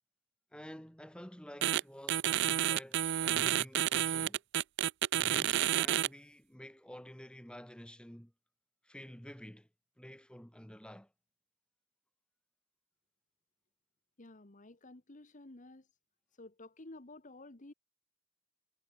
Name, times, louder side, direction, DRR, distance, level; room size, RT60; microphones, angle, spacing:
voice 1, 0.5-4.4 5.1-8.3 8.8-9.7 10.0-11.1, equal, 5° left, 2.3 m, -50 dB
sound 1, 1.6-1.8 2.1-6.1, right 12 dB, 65° right, 0.4 m, -30 dB
voice 2, 14.2-15.9 16.4-17.7, left 2 dB, 40° left, 1.5 m, -52 dB
head